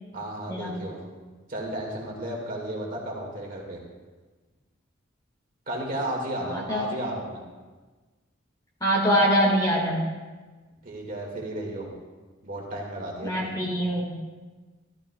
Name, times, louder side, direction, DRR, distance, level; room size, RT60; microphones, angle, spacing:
voice 1, 0.1-1.0 1.5-3.8 5.7-7.4 10.8-11.9 12.4-13.5, right 1 dB, 45° right, -2 dB, 1.9 m, -33 dB
voice 2, 6.5-6.8 8.8-10.0 13.2-14.1, equal, 20° left, -2 dB, 1.7 m, -23 dB
13.5 x 12.5 x 2.3 m, 1.3 s
head